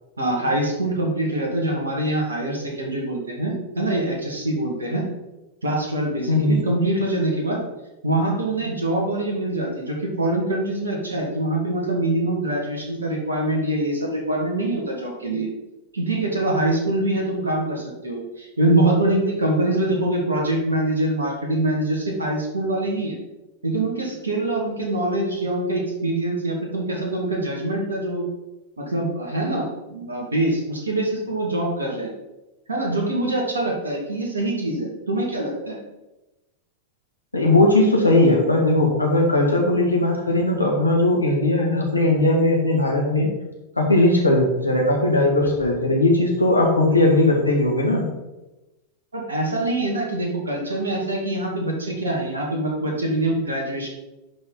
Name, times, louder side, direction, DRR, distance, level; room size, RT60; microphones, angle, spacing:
voice 1, 0.2-5.0 5.6-7.6 8.0-15.5 15.9-23.2 23.6-28.2 28.8-32.1 32.7-35.8 49.1-53.9, right 1 dB, 75° right, -1 dB, 2.0 m, -24 dB
voice 2, 6.3-6.6 37.3-43.3 43.8-48.1, left 2 dB, 85° left, -1 dB, 1.9 m, -18 dB
11.0 x 4.3 x 4.0 m, 1.0 s
figure-of-eight pair, 90°, 0 cm